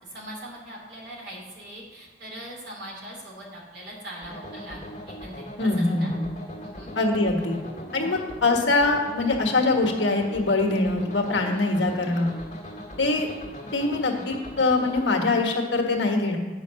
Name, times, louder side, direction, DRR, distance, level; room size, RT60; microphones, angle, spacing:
voice 1, 0.0-6.1 6.6-6.9, right 1 dB, 65° right, -3 dB, 2.8 m, -41 dB
sound 1, 4.2-15.0, equal, 35° left, 1.6 m, -40 dB
voice 2, 5.6-6.3 6.9-7.6 7.9-12.3 13.0-13.3 13.7-16.4, left 2 dB, 75° left, 1 dB, 1.4 m, -23 dB
8.9 x 5.5 x 6.9 m, 1.4 s
head